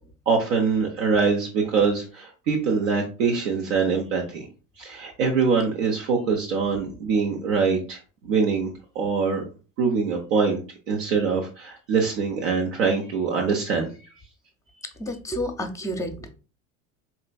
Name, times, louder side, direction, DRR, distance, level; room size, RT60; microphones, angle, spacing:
voice 1, 0.3-4.5 4.8-8.0 8.3-9.4 9.8-10.6 10.9-13.9, right 5 dB, 70° right, 0 dB, 0.8 m, -23 dB
voice 2, 15.0-16.3, equal, 10° left, 6 dB, 0.7 m, -30 dB
4.3 x 3.2 x 2.2 m, 0.34 s
hypercardioid pair, 75°, 40 cm